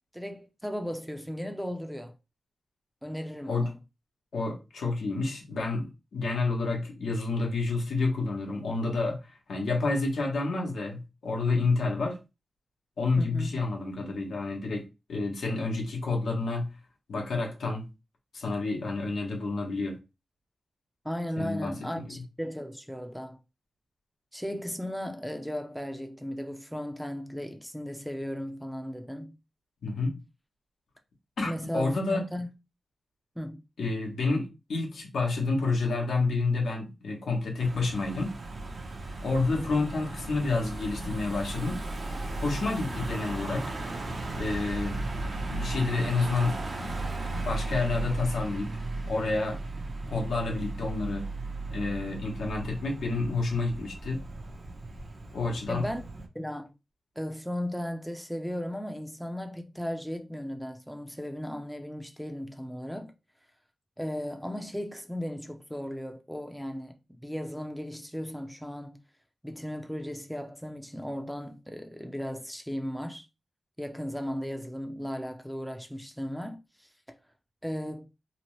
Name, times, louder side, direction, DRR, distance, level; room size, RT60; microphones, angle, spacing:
voice 1, 0.1-2.1 3.0-3.7 13.2-13.6 21.0-23.4 24.3-29.3 31.4-32.5 33.4-33.6 39.5-39.8 55.7-56.0 56.3-56.7 57.2-63.1 64.0-69.0 69.4-73.3 73.8-76.9 77.6-78.0, equal, ahead, 0.4 m, -36 dB
voice 2, 4.3-12.2 13.0-16.7 17.1-17.9 18.3-20.0 21.4-21.7 29.8-30.2 31.4-32.2 33.8-38.3 39.2-41.8 42.4-43.6 44.4-45.0 45.5-46.9 47.2-48.7 49.1-49.6 50.1-51.2 51.7-54.2 55.3-55.8, left 3 dB, 90° left, 0.8 m, -29 dB
Car passing by / Engine, 37.6-56.3, right 2 dB, 55° right, 0.6 m, -36 dB
2.8 x 2.0 x 3.0 m
wide cardioid pair, 80°, 0 cm